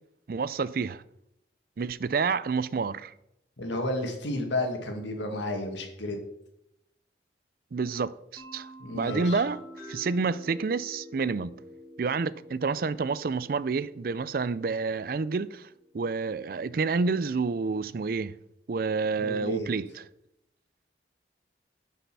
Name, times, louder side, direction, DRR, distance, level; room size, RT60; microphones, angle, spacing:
voice 1, 0.3-1.0 1.8-3.1 7.7-9.6 9.9-11.5 12.0-15.7 15.9-18.3 18.7-20.0, right 4 dB, 50° right, 0.4 m, -29 dB
voice 2, 3.6-6.2 8.8-9.4 19.2-19.7, left 1 dB, 90° left, 2.1 m, -32 dB
sound 1, 8.4-16.0, equal, 15° left, 3.1 m, -47 dB
10.0 x 5.6 x 6.1 m
head